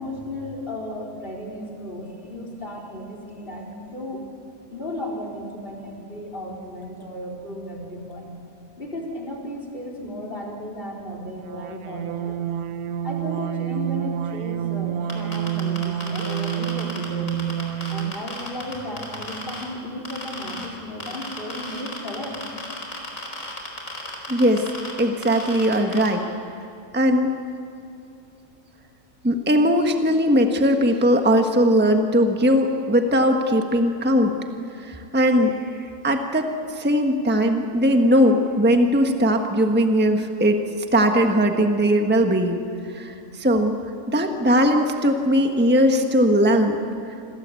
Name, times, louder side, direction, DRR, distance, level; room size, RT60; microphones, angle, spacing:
voice 1, 0.0-4.2 4.7-8.3 8.8-12.5 13.0-17.4 17.9-22.4, left 1 dB, 35° left, 0 dB, 4.7 m, -34 dB
sound 1, 11.5-18.3, right 11 dB, 90° right, 1.3 m, -28 dB
sound 2, 15.1-19.6 20.0-20.7 21.0-26.1, left 2 dB, 60° left, 5.0 m, -33 dB
voice 2, 24.3-24.7 25.0-26.3 26.9-27.4 29.2-34.3 34.8-35.6 36.0-36.5 36.8-40.6 40.9-42.6 42.9-43.8 44.1-46.8, equal, 5° right, 4 dB, 1.4 m, -19 dB
28.5 x 21.5 x 8.4 m, 2.6 s
omnidirectional pair, 1.6 m